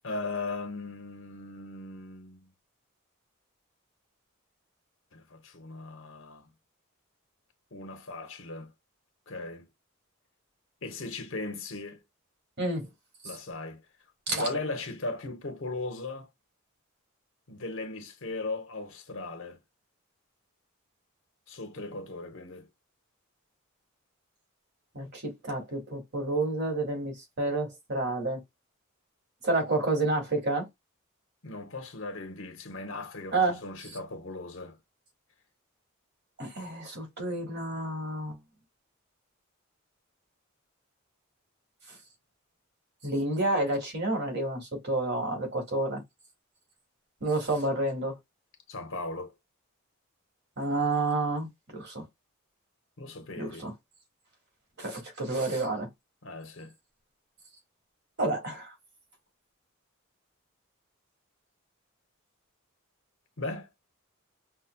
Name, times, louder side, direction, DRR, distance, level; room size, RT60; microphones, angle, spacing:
voice 1, 0.0-2.5 5.1-6.5 7.7-8.7 9.3-9.7 10.8-12.0 13.2-13.8 14.4-16.3 17.5-19.6 21.5-22.7 31.4-34.8 48.7-49.3 53.0-53.7 56.2-56.7 63.4-63.7, left 2 dB, 65° left, 0.9 m, -38 dB
voice 2, 12.6-12.9 14.3-14.5 24.9-28.4 29.4-30.7 33.3-33.6 36.4-38.4 43.0-46.0 47.2-48.1 50.6-51.5 51.7-52.0 53.4-53.7 54.8-55.9 58.2-58.7, right 2 dB, 50° right, 1.6 m, -29 dB
5.5 x 2.1 x 2.2 m
head